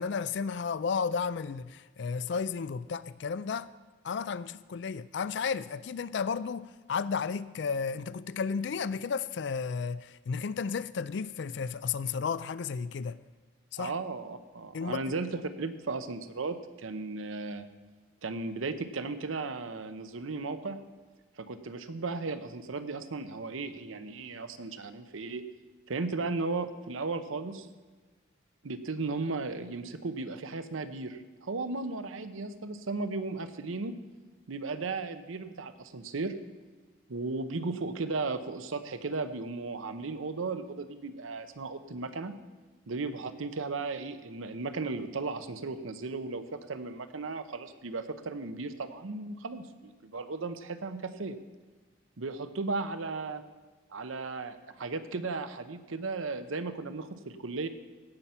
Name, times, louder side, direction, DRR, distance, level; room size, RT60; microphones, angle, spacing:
voice 1, 0.0-3.7 4.0-13.2 13.7-13.9 14.7-15.2, left 5 dB, 60° left, 0.4 m, -33 dB
voice 2, 13.8-17.6 18.2-20.8 21.4-25.4 25.9-27.7 28.6-34.0 34.5-36.3 37.1-42.3 42.9-51.4 52.2-53.4 53.9-57.7, right 3 dB, 85° right, 0.7 m, -35 dB
16.5 x 5.8 x 5.6 m
head